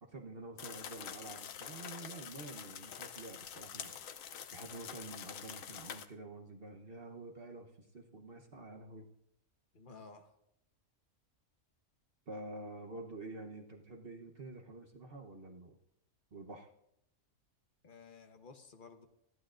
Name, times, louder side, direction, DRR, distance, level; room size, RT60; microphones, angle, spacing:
voice 1, 0.0-4.1 4.5-9.1 12.3-15.8 16.3-16.7, right 2 dB, 50° right, 2 dB, 1.2 m, -48 dB
sound 1, 0.6-6.1, left 8 dB, 85° left, 1.1 m, -46 dB
voice 2, 9.7-10.3 17.8-19.1, left 4 dB, 40° left, 5 dB, 1.2 m, -54 dB
18.5 x 14.0 x 2.5 m, 0.79 s
omnidirectional pair, 1.3 m